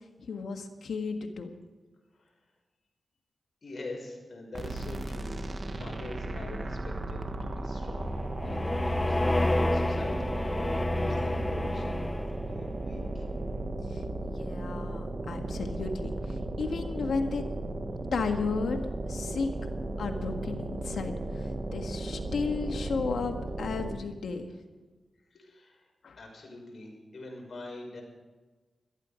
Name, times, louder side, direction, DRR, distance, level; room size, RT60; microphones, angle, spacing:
voice 1, 0.2-1.5 13.9-17.4 18.1-18.8 19.1-19.5 20.0-24.5 26.0-26.2, left 4 dB, 85° left, 5 dB, 1.7 m, -34 dB
voice 2, 3.6-12.0 12.3-13.3 25.3-25.9 26.2-28.0, left 2 dB, 60° left, 1 dB, 6.0 m, -44 dB
sound 1, 4.5-24.2, right 2 dB, 45° right, 1.4 m, -35 dB
sound 2, 8.0-12.6, left 1 dB, 20° left, 0.5 m, -29 dB
17.5 x 13.5 x 5.1 m, 1.3 s
cardioid pair, 65°, 0 cm